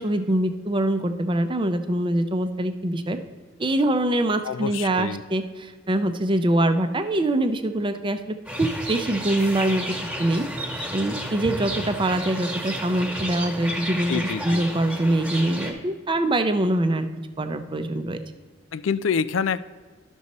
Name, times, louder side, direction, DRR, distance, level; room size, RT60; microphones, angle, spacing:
voice 1, 0.0-3.2 3.6-10.5 10.9-17.1 17.4-18.2, right 1 dB, 25° right, 9 dB, 0.6 m, -24 dB
voice 2, 4.4-5.2 14.1-14.6 18.7-19.6, left 6 dB, 90° left, 16 dB, 0.4 m, -26 dB
sound 1, 8.5-15.7, equal, 5° right, 1.4 m, -32 dB
12.0 x 6.3 x 4.1 m, 1.4 s
head